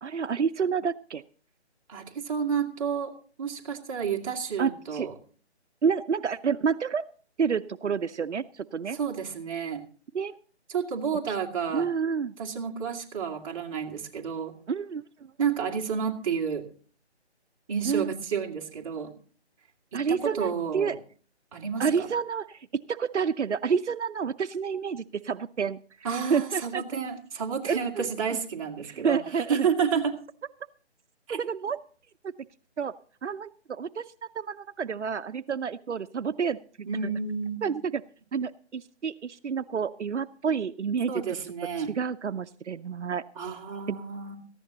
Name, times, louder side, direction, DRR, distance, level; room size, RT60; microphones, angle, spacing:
voice 1, 0.0-1.2 4.6-5.1 5.8-7.0 7.4-9.0 10.1-10.4 11.7-12.4 14.7-15.0 17.8-18.1 19.9-21.0 21.8-25.8 26.3-26.8 27.7-28.1 28.8-29.7 31.3-31.8 32.8-32.9 33.2-34.1 34.4-36.9 37.6-37.8 38.3-41.1 41.9-43.2 43.9-44.0, right 6 dB, 85° right, 13 dB, 0.7 m, -29 dB
voice 2, 1.9-3.1 3.4-5.1 8.9-9.8 10.7-11.9 12.4-14.5 15.4-16.6 17.7-19.1 19.9-21.0 21.5-22.1 26.0-30.2 31.3-31.4 36.9-37.7 41.1-41.9 43.4-44.3, right 6 dB, 30° right, 0 dB, 2.2 m, -30 dB
18.0 x 14.5 x 2.9 m, 0.42 s
figure-of-eight pair, 155°, 34 cm